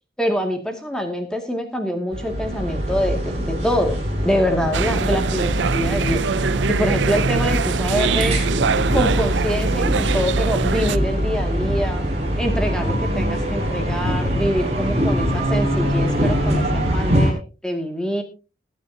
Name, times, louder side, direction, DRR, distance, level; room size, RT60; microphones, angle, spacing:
voice 1, 0.2-6.2 6.7-8.4 8.9-12.1 12.4-17.4 17.6-18.2, equal, 5° left, 4 dB, 2.3 m, -25 dB
sound 1, 2.1-17.3, equal, 35° right, 5.6 m, -23 dB
sound 2, 4.7-11.0, right 5 dB, 80° right, 0.5 m, -23 dB
21.5 x 9.5 x 2.9 m, 0.33 s
head